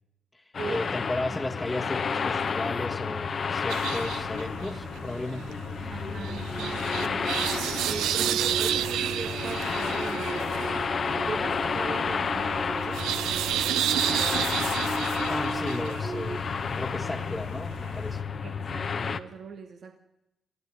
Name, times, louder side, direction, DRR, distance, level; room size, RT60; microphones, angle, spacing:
voice 1, 0.3-5.6 15.3-18.2, left 2 dB, 15° left, -1 dB, 1.6 m, -35 dB
sound 1, 0.5-19.2, left 5 dB, 55° left, 1.2 m, -31 dB
sound 2, 2.5-16.4, right 4 dB, 45° right, 3.5 m, -39 dB
sound 3, 3.7-18.2, right 11 dB, 80° right, 0.8 m, -32 dB
voice 2, 5.9-10.9 11.1-14.5 18.4-20.0, right 5 dB, 60° right, 5 dB, 1.7 m, -40 dB
22.5 x 14.0 x 9.7 m, 0.90 s
supercardioid pair, 50°, 0 cm